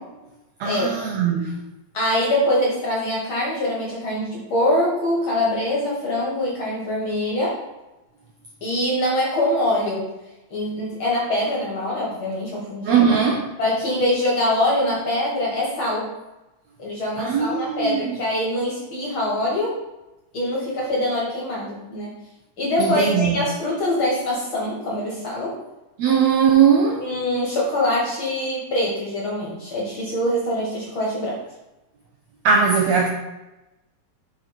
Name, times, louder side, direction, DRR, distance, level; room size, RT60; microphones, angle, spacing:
voice 1, 0.6-1.6 12.9-13.5 17.2-18.1 22.8-23.3 26.0-27.0 32.4-33.1, right 6 dB, 80° right, 1.6 m, -19 dB
voice 2, 1.9-7.6 8.6-10.1 10.5-13.0 13.6-16.1 16.8-19.8 20.3-22.1 22.6-25.6 27.0-31.4, left 1 dB, 50° left, 1.7 m, -24 dB
7.3 x 4.5 x 4.3 m
omnidirectional pair, 3.9 m